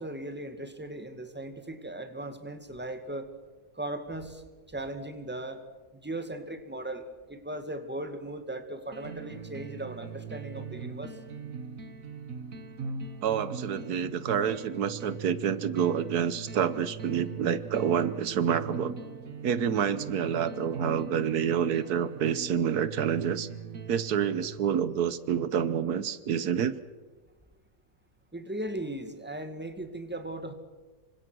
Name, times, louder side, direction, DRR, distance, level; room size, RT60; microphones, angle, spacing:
voice 1, 0.0-3.3 3.7-4.4 4.7-5.6 5.9-11.2 28.3-30.5, right 1 dB, 5° right, 8 dB, 1.9 m, -38 dB
sound 1, 8.9-24.8, right 5 dB, 60° right, 1.7 m, -40 dB
voice 2, 13.2-19.0 19.4-23.5 23.9-26.8, right 8 dB, 80° right, 15 dB, 1.5 m, -28 dB
27.5 x 25.0 x 6.3 m, 1.2 s
omnidirectional pair, 1.6 m